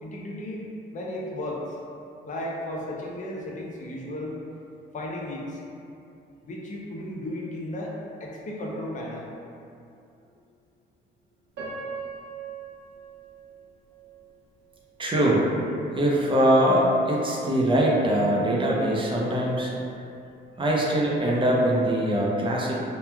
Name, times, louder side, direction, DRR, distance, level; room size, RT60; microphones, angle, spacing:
voice 1, 0.0-1.8 2.2-4.3 4.9-5.6 6.4-9.3, left 1 dB, 40° left, -2 dB, 0.5 m, -34 dB
Piano, 11.5-14.6 15.1-15.2 15.9-16.1, right 4 dB, 80° right, 0.9 m, -40 dB
voice 2, 15.0-15.5 16.0-19.7 20.6-22.8, right 1 dB, 25° right, -3 dB, 0.5 m, -22 dB
3.0 x 2.2 x 2.2 m, 2.6 s
cardioid pair, 90°, 20 cm